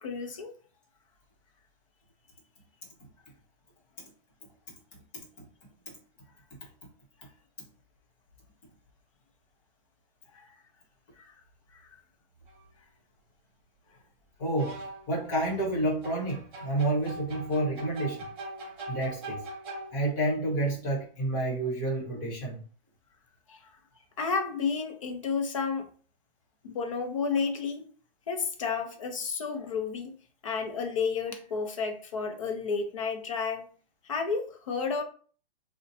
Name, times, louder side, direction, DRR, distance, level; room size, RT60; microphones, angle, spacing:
voice 1, 0.0-0.5 10.3-10.5 11.2-11.3 11.7-11.9 23.5-23.7 24.2-25.9 26.6-27.8 28.3-30.1 30.4-33.7 34.0-35.0, left 5 dB, 35° left, 0.5 m, -31 dB
sound 1, 12.5-12.6 14.6-15.2 16.0-20.3, right 1 dB, 60° right, 1.0 m, -41 dB
voice 2, 14.4-14.8 15.1-18.3 18.9-19.4 19.9-22.6, right 1 dB, 20° left, 0.9 m, -29 dB
2.6 x 2.1 x 4.0 m
hypercardioid pair, 165°, 30 cm